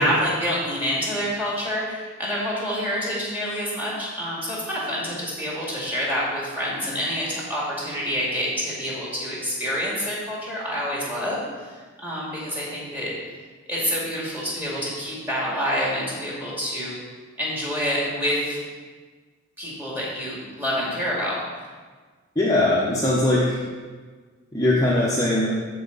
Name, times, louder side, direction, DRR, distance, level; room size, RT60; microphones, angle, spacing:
voice 1, 0.0-11.4 12.0-13.1 13.7-16.9 17.4-18.6 19.6-21.4, equal, 10° right, -6 dB, 2.2 m, -27 dB
voice 2, 22.4-23.6 24.5-25.5, left 1 dB, 15° left, -6 dB, 0.9 m, -20 dB
13.5 x 4.6 x 4.0 m, 1.5 s
head